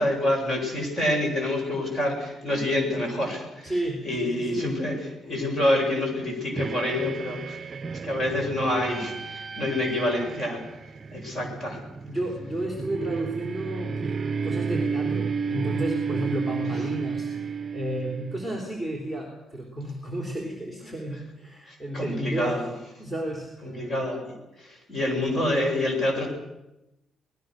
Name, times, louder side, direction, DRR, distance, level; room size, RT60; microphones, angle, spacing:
voice 1, 0.0-3.7 4.0-5.0 5.3-7.6 7.9-10.6 11.1-11.8 16.6-16.7 21.7-22.7 23.7-24.2 24.6-26.3, left 1 dB, 35° left, 2 dB, 7.6 m, -27 dB
voice 2, 3.6-4.8 12.1-14.2 14.4-17.3 17.7-22.6 23.0-24.0, right 1 dB, 15° left, 1 dB, 3.7 m, -32 dB
sound 1, 6.6-18.6, right 5 dB, 30° right, 0.7 m, -32 dB
25.5 x 19.5 x 6.6 m, 0.93 s
cardioid pair, 130°, 0 cm